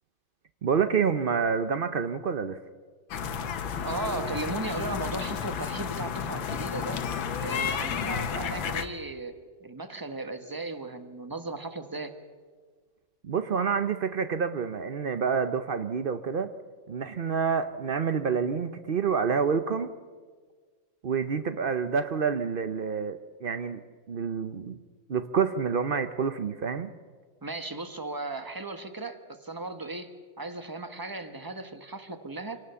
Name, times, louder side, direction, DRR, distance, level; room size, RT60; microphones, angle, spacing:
voice 1, 0.6-2.6 13.2-16.5 16.9-19.9 21.0-23.8 24.1-24.8 25.1-26.9, right 6 dB, 75° right, 10 dB, 0.5 m, -28 dB
sound 1, 3.1-8.9, left 7 dB, 85° left, 1.9 m, -32 dB
voice 2, 3.8-7.1 7.4-12.1 27.4-32.6, right 2 dB, 15° right, 8 dB, 1.2 m, -36 dB
26.5 x 18.5 x 7.0 m, 1.5 s
omnidirectional pair, 2.1 m